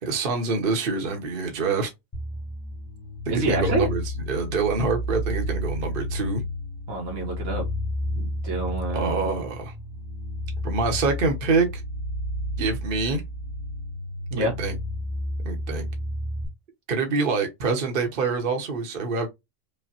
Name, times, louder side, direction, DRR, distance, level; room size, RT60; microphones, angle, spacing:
voice 1, 0.0-1.9 3.3-6.4 8.9-9.7 10.6-11.8 12.6-13.2 14.3-14.8 15.4-15.9 16.9-19.3, right 4 dB, 45° right, 1.0 m, -26 dB
sound 1, 2.1-16.4, left 1 dB, 25° left, 0.5 m, -31 dB
voice 2, 3.3-3.9 6.9-7.6 8.1-9.2 14.3-14.5, right 2 dB, 80° right, 1.7 m, -27 dB
5.0 x 2.2 x 2.8 m
omnidirectional pair, 1.4 m